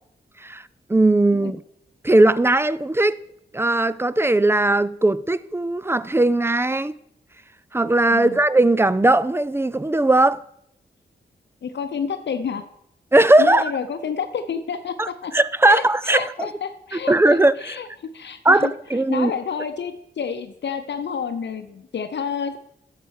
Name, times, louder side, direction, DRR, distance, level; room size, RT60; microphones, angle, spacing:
voice 1, 0.9-1.6 2.0-3.2 3.5-6.9 7.7-10.4 13.1-13.6 15.0-15.1 15.3-16.3 17.1-17.5 18.4-19.3, right 2 dB, 15° right, 0.4 m, -18 dB
voice 2, 11.6-12.6 13.4-15.3 15.7-17.2 17.6-18.7 19.1-22.6, left 6 dB, 70° left, 0.7 m, -29 dB
11.0 x 6.7 x 6.4 m
cardioid pair, 75°, 19 cm